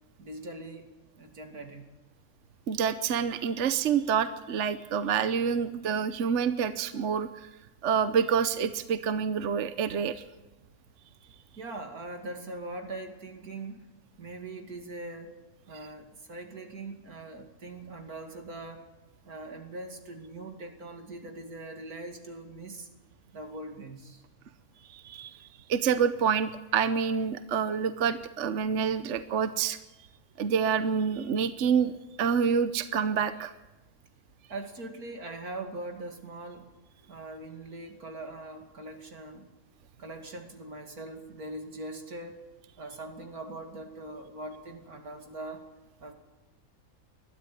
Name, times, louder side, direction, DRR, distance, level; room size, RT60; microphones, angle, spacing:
voice 1, 0.2-1.9 11.6-13.9 14.2-15.4 15.7-18.9 19.2-22.9 23.3-24.2 34.5-36.7 37.1-39.5 40.0-42.4 42.8-45.7 46.0-46.1, right 2 dB, 90° right, 4 dB, 3.0 m, -41 dB
voice 2, 2.7-7.5 7.8-10.2 24.9-29.8 30.4-31.9 32.2-33.5, right 7 dB, 60° right, 12 dB, 1.1 m, -27 dB
20.5 x 13.0 x 9.9 m, 1.1 s
omnidirectional pair, 1.5 m